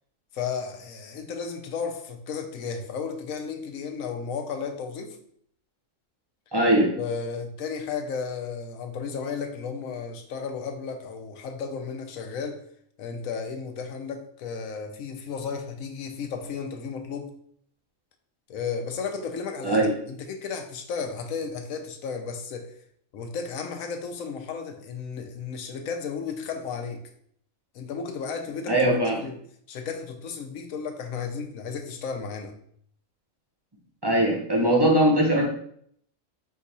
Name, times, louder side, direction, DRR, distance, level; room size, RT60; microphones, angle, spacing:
voice 1, 0.3-5.2 7.0-12.6 13.0-17.3 18.5-22.7 23.1-27.0 27.7-28.8 29.2-29.3 29.7-32.5, left 5 dB, 90° left, 5 dB, 1.1 m, -34 dB
voice 2, 6.5-7.0 19.6-19.9 28.7-29.2 34.0-35.5, right 1 dB, 35° right, -1 dB, 0.4 m, -21 dB
4.5 x 2.4 x 4.0 m, 0.64 s
omnidirectional pair, 1.4 m